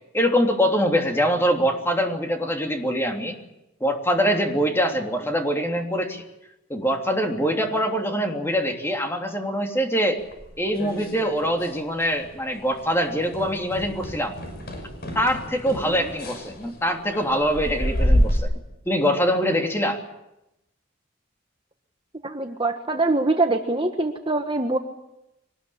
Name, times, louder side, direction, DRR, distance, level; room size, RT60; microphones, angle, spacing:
voice 1, 0.1-3.4 3.8-6.2 6.7-10.2 10.6-14.3 15.1-18.5 18.8-20.0, equal, 10° left, 2 dB, 3.1 m, -23 dB
sound 1, 10.3-11.8 12.0-12.4 12.7-12.9 13.3-18.4, equal, 50° left, 5.9 m, -27 dB
voice 2, 22.2-24.8, right 2 dB, 25° right, 4 dB, 1.4 m, -24 dB
24.5 x 19.5 x 8.7 m, 0.89 s
head